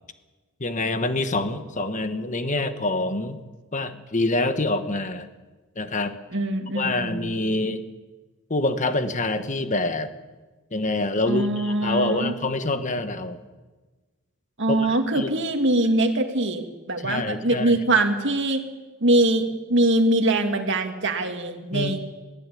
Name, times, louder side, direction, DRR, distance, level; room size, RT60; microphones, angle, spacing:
voice 1, 0.6-3.4 3.7-5.3 5.7-6.2 6.7-7.8 8.5-10.1 10.7-13.4 14.7-15.3 17.0-17.8 21.7-22.0, left 2 dB, 35° left, 9 dB, 1.3 m, -26 dB
voice 2, 6.3-7.3 11.3-12.4 14.6-18.6 19.0-22.0, right 1 dB, 55° right, 4 dB, 2.1 m, -23 dB
21.0 x 16.0 x 8.6 m, 1.3 s
head